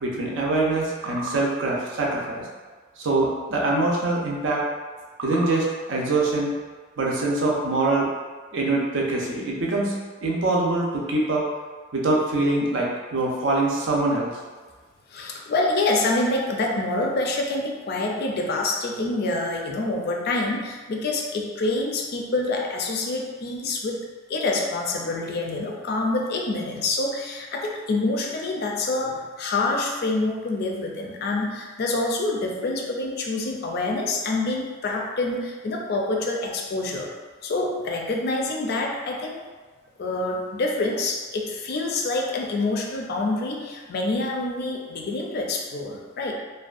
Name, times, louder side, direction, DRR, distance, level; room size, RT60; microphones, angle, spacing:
voice 1, 0.0-2.5 3.0-4.6 5.2-6.5 7.0-8.1 8.5-9.9 10.2-11.4 11.9-14.4, right 2 dB, 70° right, -3 dB, 0.5 m, -24 dB
voice 2, 15.1-24.0 24.3-37.1 37.4-39.4 40.0-46.3, left 2 dB, 55° left, 0 dB, 0.4 m, -26 dB
2.5 x 2.2 x 2.4 m, 1.4 s
head